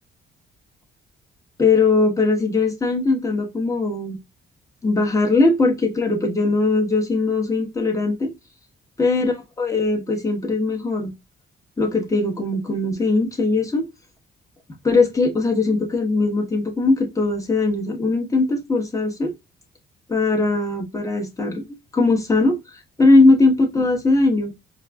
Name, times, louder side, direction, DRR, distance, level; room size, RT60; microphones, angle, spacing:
voice 1, 1.6-4.2 4.8-8.3 9.0-11.1 11.8-13.9 14.8-19.3 20.1-21.6 21.9-22.6 23.0-24.5, left 3 dB, 15° left, 1.0 m, -20 dB
4.6 x 2.5 x 2.2 m
cardioid pair, 90°, 20 cm